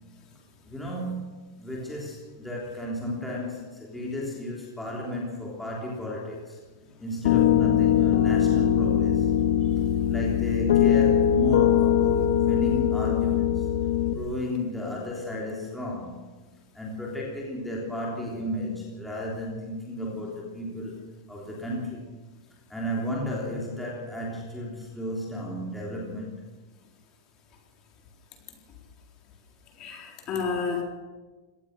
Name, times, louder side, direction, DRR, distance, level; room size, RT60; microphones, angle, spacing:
voice 1, 0.6-1.3 1.6-6.6 7.0-9.3 10.1-13.7 14.1-16.3 16.7-22.0 22.7-26.4, left 1 dB, 5° left, -3 dB, 3.4 m, -33 dB
Piano, 7.2-14.1, left 10 dB, 65° left, 2.2 m, -21 dB
voice 2, 29.8-30.8, left 5 dB, 25° left, 2 dB, 4.0 m, -30 dB
24.0 x 18.0 x 6.7 m, 1.2 s
supercardioid pair, 175°, 2 cm